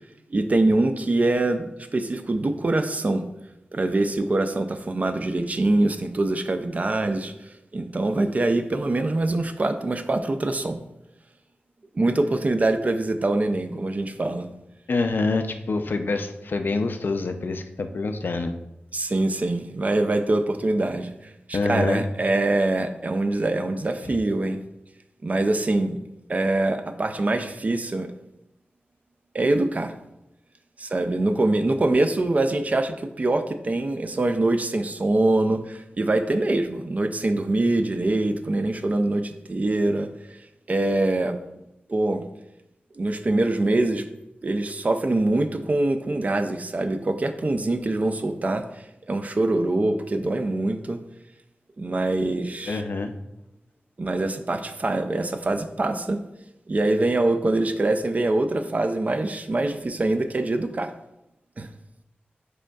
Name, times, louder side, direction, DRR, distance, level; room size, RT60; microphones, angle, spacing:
voice 1, 0.3-3.3 3.7-10.8 11.9-14.5 18.9-24.6 25.2-26.0 26.3-28.1 29.3-30.0 30.8-40.4 40.7-41.4 41.9-42.3 43.0-44.1 44.4-51.0 51.8-52.8 54.0-56.2 56.7-60.9 61.6-61.7, right 2 dB, 40° right, 8 dB, 0.4 m, -24 dB
voice 2, 14.9-18.5 21.5-22.0 24.0-24.1 52.7-53.1, left 3 dB, 60° left, 7 dB, 0.4 m, -26 dB
4.9 x 4.7 x 2.3 m, 0.88 s
wide cardioid pair, 90°, 4 cm